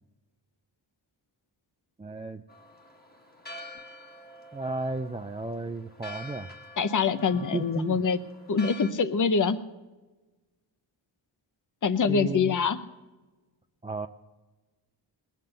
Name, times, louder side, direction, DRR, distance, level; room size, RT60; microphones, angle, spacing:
voice 1, 2.0-2.4 4.5-6.5 7.5-8.0 12.1-12.6 13.8-14.1, right 2 dB, 15° right, 5 dB, 0.4 m, -33 dB
Church bell, 2.5-8.9, left 1 dB, 20° left, 1.7 m, -46 dB
voice 2, 6.8-8.2 8.5-9.6 11.8-12.8, left 5 dB, 40° left, 12 dB, 0.8 m, -24 dB
21.0 x 7.6 x 6.7 m, 1.2 s
wide cardioid pair, 145°, 47 cm